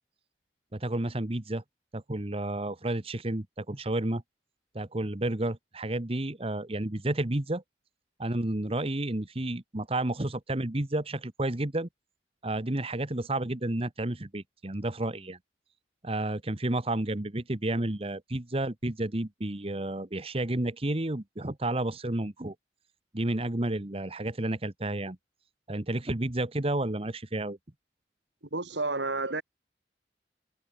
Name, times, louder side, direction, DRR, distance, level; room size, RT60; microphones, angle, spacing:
voice 1, 0.7-1.6 1.9-4.2 4.7-7.6 8.2-11.9 12.4-15.4 16.0-22.5 23.1-25.2 25.7-27.6, right 1 dB, 35° right, 1.3 m, -31 dB
voice 2, 28.5-29.4, right 3 dB, 85° right, 3.3 m, -30 dB
head